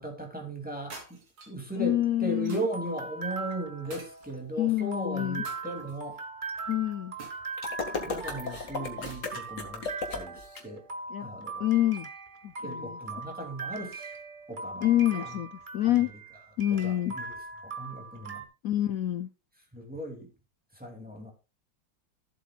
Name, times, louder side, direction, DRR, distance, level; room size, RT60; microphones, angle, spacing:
voice 1, 0.0-6.2 8.0-9.8 10.1-10.8 11.2-11.7 12.6-14.1 14.5-15.3 15.8-16.1 16.8-17.2 17.6-18.5 19.7-20.3 20.8-21.3, right 1 dB, 5° right, 2.6 m, -37 dB
sound 1, 0.9-1.7 2.5-2.9 3.9-4.7 5.4-6.2 7.2-8.1 9.1-9.6, right 2 dB, 90° right, 4.2 m, -48 dB
voice 2, 1.8-2.7 4.6-5.4 6.7-7.1 11.1-11.3 11.6-12.1 12.4-13.0 14.8-16.1 16.6-17.1 18.6-19.3, left 13 dB, 80° left, 0.7 m, -27 dB
sound 2, 1.8-18.4, right 3 dB, 30° right, 1.0 m, -40 dB
sound 3, 7.6-10.6, left 4 dB, 40° left, 2.1 m, -35 dB
15.0 x 7.8 x 2.4 m
omnidirectional pair, 2.2 m